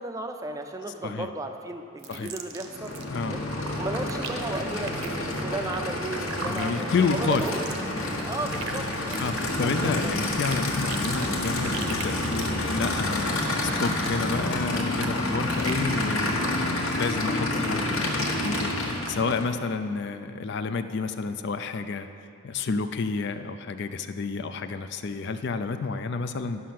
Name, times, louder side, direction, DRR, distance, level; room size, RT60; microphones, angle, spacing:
voice 1, 0.0-2.9 3.3-3.4 3.8-7.6 8.2-9.3 9.6-10.2, right 2 dB, 15° right, 5 dB, 0.4 m, -34 dB
sound 1, 2.0-3.1 3.4-15.9 16.2-16.6 17.0-18.6 19.1-19.2, right 5 dB, 70° right, 0.8 m, -39 dB
Aircraft / Idling, 2.6-19.5, left 1 dB, 75° left, 1.4 m, -29 dB
voice 2, 3.1-3.4 6.5-7.5 9.2-22.1 22.4-26.6, left 4 dB, 50° left, 10 dB, 0.4 m, -30 dB
11.0 x 6.3 x 5.9 m, 2.5 s
head